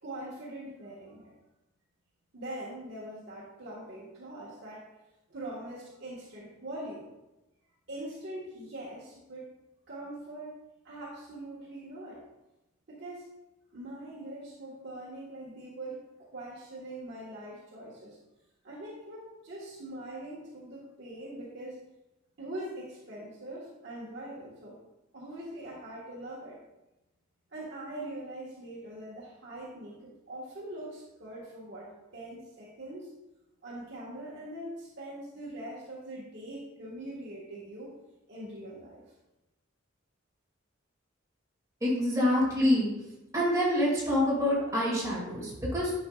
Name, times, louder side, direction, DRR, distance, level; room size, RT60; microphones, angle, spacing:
voice 1, 0.0-1.3 2.3-4.9 5.3-7.1 7.9-9.5 9.9-10.5 10.8-12.2 12.9-13.3 13.7-18.2 18.6-21.9 22.4-24.8 25.1-26.6 27.5-33.1 33.6-38.0 38.3-39.1, right 1 dB, 55° right, -7 dB, 1.5 m, -42 dB
voice 2, 41.8-42.9 43.3-45.9, left 1 dB, 15° right, -5 dB, 2.3 m, -26 dB
10.0 x 5.6 x 2.4 m, 0.99 s
head